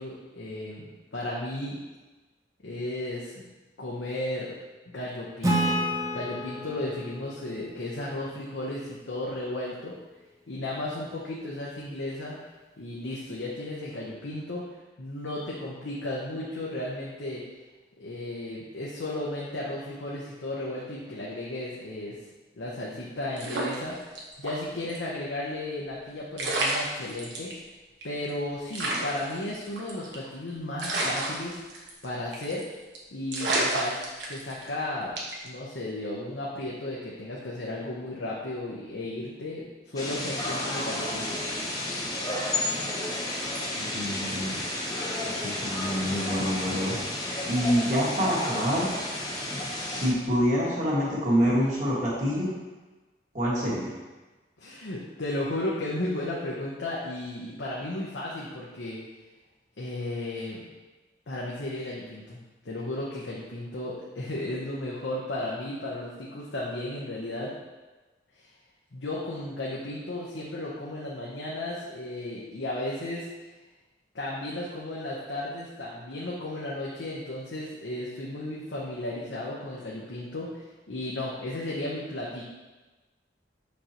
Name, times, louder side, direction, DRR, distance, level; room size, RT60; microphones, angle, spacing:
voice 1, 0.0-1.8 2.6-3.5 3.8-4.5 4.9-5.9 6.1-9.9 10.5-12.4 12.8-14.6 15.0-17.4 18.0-22.2 22.5-27.5 28.0-31.6 32.0-32.6 33.1-34.0 34.3-35.2 35.4-41.4 54.6-59.0 59.8-60.7 61.3-62.4 62.6-67.5 68.4-68.5 68.9-73.3 74.1-82.4, left 1 dB, 90° left, -5 dB, 0.9 m, -34 dB
Acoustic guitar / Strum, 5.4-8.9, right 1 dB, 20° right, 0.7 m, -30 dB
sound 1, 23.4-24.6 24.9-25.0 26.0-26.1 26.4-27.5 28.0-28.1 28.3-28.4 28.7-30.3 30.8-32.0 32.3-32.6 32.9-33.0 33.3-34.7 35.2-35.5, right 1 dB, 75° right, 1.2 m, -30 dB
sound 2, 40.0-50.1, left 1 dB, 20° left, 0.9 m, -32 dB
voice 2, 43.7-44.6 45.2-46.9 47.4-48.9 49.9-52.5 53.3-53.9, equal, 45° right, -7 dB, 1.9 m, -26 dB
6.5 x 5.2 x 3.0 m, 1.2 s
head